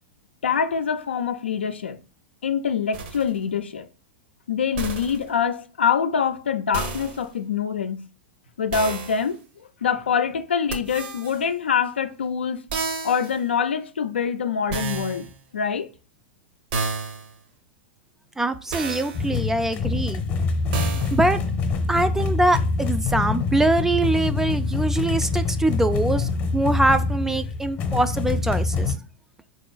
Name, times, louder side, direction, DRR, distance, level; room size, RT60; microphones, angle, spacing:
voice 1, 0.4-2.0 2.4-3.9 4.5-8.1 8.6-9.3 9.8-12.6 13.0-15.3 15.5-15.9, left 7 dB, 85° left, 0.4 m, -25 dB
sound 1, 2.9-3.3 4.8-5.3 6.7-7.3 8.7-9.3 10.7-11.4 12.7-13.4 14.7-15.3 16.7-17.3 18.7-19.3 20.7-21.3, right 4 dB, 60° right, 0.8 m, -31 dB
voice 2, 18.4-20.2 20.9-21.4 21.9-29.0, right 2 dB, 5° right, 0.3 m, -23 dB
sound 2, 19.1-29.0, left 4 dB, 40° left, 0.8 m, -25 dB
3.7 x 2.9 x 2.3 m
hypercardioid pair, 105°, 6 cm